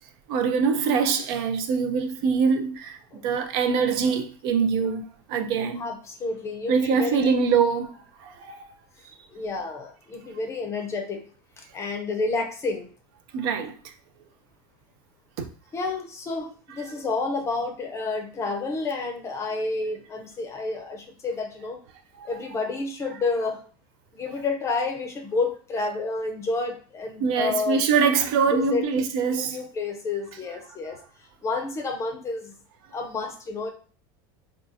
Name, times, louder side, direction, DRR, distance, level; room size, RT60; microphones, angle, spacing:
voice 1, 0.3-5.0 5.3-5.9 6.7-8.6 13.3-13.9 15.4-15.5 16.9-17.0 22.2-22.3 27.2-29.6, right 5 dB, 65° right, 0.5 m, -24 dB
voice 2, 5.8-7.4 9.3-11.2 11.6-12.9 15.7-21.8 22.3-23.6 24.2-27.8 28.5-28.9 29.3-31.0 31.4-32.5 32.9-33.7, left 3 dB, 20° left, 0.5 m, -30 dB
3.7 x 2.4 x 2.6 m
supercardioid pair, 145°, 12 cm